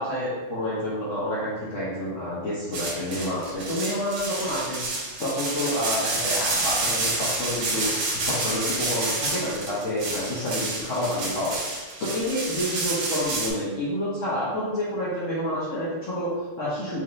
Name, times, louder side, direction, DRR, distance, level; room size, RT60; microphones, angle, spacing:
voice 1, 0.0-4.8 5.2-11.6 12.0-17.0, left 1 dB, 50° left, -9 dB, 1.0 m, -29 dB
sound 1, 2.7-13.5, right 2 dB, 90° right, 1.7 m, -29 dB
4.2 x 3.3 x 2.6 m, 1.3 s
omnidirectional pair, 2.1 m